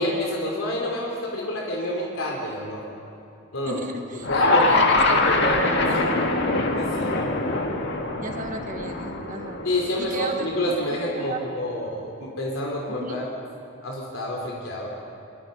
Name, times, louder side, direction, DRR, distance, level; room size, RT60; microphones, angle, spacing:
voice 1, 0.0-2.8 3.5-3.8 4.3-4.7 5.1-6.1 6.8-7.2 9.6-13.3 13.8-14.9, left 1 dB, 80° left, -2 dB, 3.3 m, -28 dB
voice 2, 3.7-6.1 8.2-9.6 10.0-11.4 12.9-13.2, right 2 dB, 40° right, 4 dB, 1.6 m, -34 dB
sound 1, 4.2-10.5, left 2 dB, 55° left, 1.9 m, -23 dB
25.5 x 24.0 x 5.3 m, 2.6 s
head